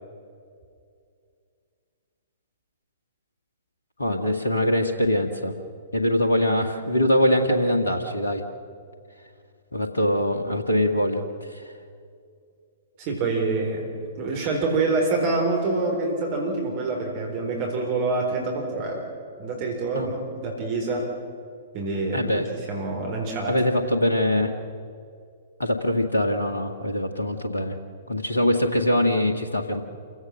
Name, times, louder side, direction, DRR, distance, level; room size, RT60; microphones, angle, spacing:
voice 1, 4.0-5.6 5.9-8.4 9.7-11.7 19.9-20.1 22.1-22.5 23.5-24.5 25.6-27.7 28.1-29.8, left 1 dB, 75° left, 5 dB, 1.8 m, -23 dB
voice 2, 13.0-13.9 14.2-19.1 19.4-21.2 21.7-23.6, right 3 dB, 40° right, 1 dB, 4.0 m, -26 dB
28.0 x 16.5 x 6.4 m, 2.3 s
figure-of-eight pair, 110°, 0 cm